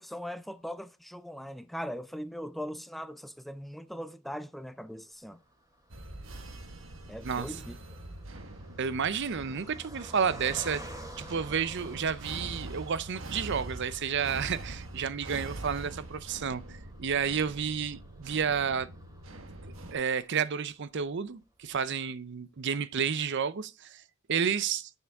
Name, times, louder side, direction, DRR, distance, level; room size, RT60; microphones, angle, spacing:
voice 1, 0.0-5.4 7.1-8.0, equal, ahead, 0.4 m, -40 dB
Car passing by, 5.2-20.7 21.2-21.3 21.6-21.8, right 1 dB, 20° right, 2.8 m, -51 dB
sound 1, 5.9-19.9, right 2 dB, 75° right, 1.4 m, -44 dB
voice 2, 7.2-7.6 8.8-10.8 11.2-18.9 19.6-24.0 24.3-24.9, right 6 dB, 60° right, 0.6 m, -31 dB
10.0 x 7.2 x 3.5 m
head